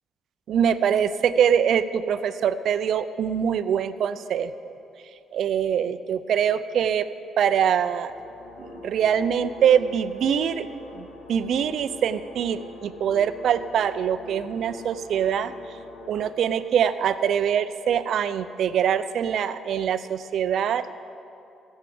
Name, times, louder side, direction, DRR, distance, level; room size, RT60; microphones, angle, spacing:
voice 1, 0.5-4.8 5.3-7.1 7.4-8.1 8.6-10.7 10.9-15.5 16.1-20.9, right 8 dB, 70° right, 13 dB, 0.5 m, -24 dB
sound 1, 8.1-16.3, left 3 dB, 80° left, 1.5 m, -44 dB
15.5 x 7.4 x 7.7 m, 2.7 s
cardioid pair, 90°, 0 cm